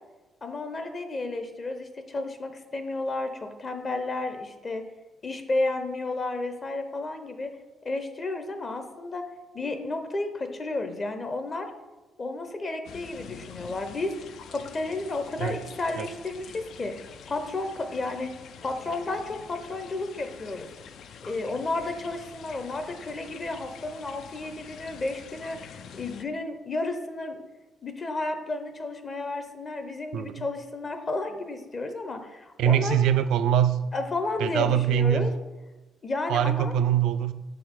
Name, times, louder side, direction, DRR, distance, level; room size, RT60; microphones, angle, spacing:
voice 1, 0.4-4.8 5.2-7.5 7.8-9.2 9.5-11.7 12.2-14.1 14.5-18.4 18.6-20.7 21.3-27.4 27.8-33.0 33.9-35.3 36.0-36.7, left 2 dB, 35° left, 7 dB, 0.7 m, -32 dB
sound 1, 12.8-26.2, left 7 dB, 70° left, 0.4 m, -46 dB
voice 2, 30.1-30.5 32.6-33.8 34.4-35.3 36.3-37.3, right 9 dB, 85° right, 12 dB, 0.3 m, -23 dB
6.1 x 4.6 x 3.7 m, 1.1 s
cardioid pair, 90°, 0 cm